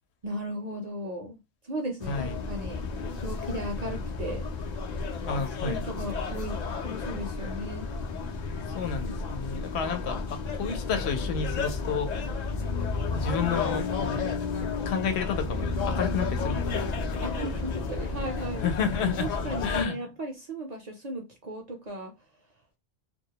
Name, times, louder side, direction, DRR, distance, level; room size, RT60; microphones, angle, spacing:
voice 1, 0.2-4.5 5.6-7.9 17.2-18.7 19.2-22.1, right 1 dB, 50° right, 0.5 m, -36 dB
sound 1, 2.0-19.8, left 4 dB, 55° left, 0.5 m, -32 dB
voice 2, 2.1-2.4 3.8-4.0 5.2-5.9 8.7-12.1 13.1-14.3 14.9-17.3 18.6-19.3 19.6-20.0, left 6 dB, 80° left, 0.9 m, -31 dB
2.2 x 2.0 x 2.7 m
omnidirectional pair, 1.1 m